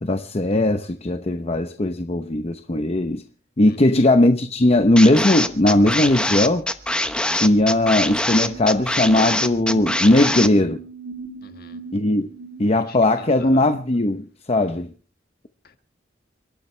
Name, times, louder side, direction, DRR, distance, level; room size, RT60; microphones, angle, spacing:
voice 1, 0.0-3.2 3.6-6.7 7.3-10.8 11.9-12.3 12.6-14.9, left 1 dB, 35° left, 0.8 m, -18 dB
sound 1, 5.0-10.5, left 1 dB, 5° left, 0.9 m, -23 dB
sound 2, 7.6-13.3, right 4 dB, 60° right, 3.8 m, -39 dB
voice 2, 11.4-11.8 12.7-13.7 15.6-15.8, left 3 dB, 55° left, 1.7 m, -41 dB
30.0 x 12.0 x 3.3 m
head